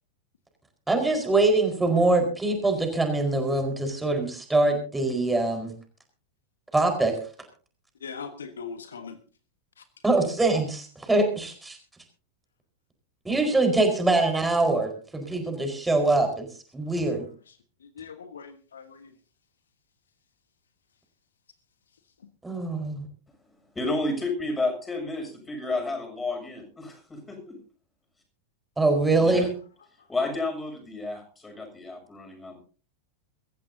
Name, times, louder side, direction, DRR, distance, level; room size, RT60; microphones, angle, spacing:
voice 1, 0.9-5.7 6.7-7.1 10.0-11.8 13.2-16.5 16.7-17.2 22.4-23.1 28.8-29.5, right 2 dB, 10° right, 4 dB, 4.6 m, -23 dB
voice 2, 8.0-9.2 18.0-19.1 29.2-29.3, left 6 dB, 70° left, 10 dB, 1.4 m, -40 dB
voice 3, 23.7-27.6 29.2-29.5 30.1-32.6, left 2 dB, 10° left, 4 dB, 6.9 m, -31 dB
24.5 x 14.5 x 2.7 m, 0.37 s
figure-of-eight pair, 90°, 0 cm